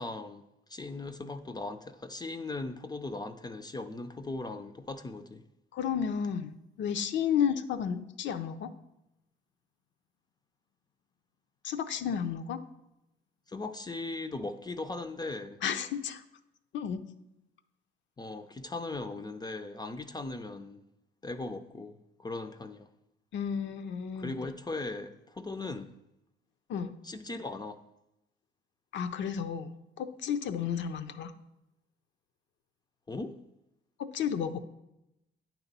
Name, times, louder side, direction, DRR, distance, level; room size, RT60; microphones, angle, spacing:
voice 1, 0.0-5.4 13.5-15.6 18.2-20.8 21.2-22.9 24.2-25.9 27.0-27.8 33.1-33.4, left 2 dB, 20° left, 0.4 m, -38 dB
voice 2, 5.7-8.7 11.6-12.6 15.6-16.2 16.7-17.0 23.3-24.4 26.7-26.9 28.9-31.3 34.0-34.6, left 8 dB, 70° left, 0.5 m, -32 dB
8.9 x 3.0 x 5.3 m
cardioid pair, 90°, 20 cm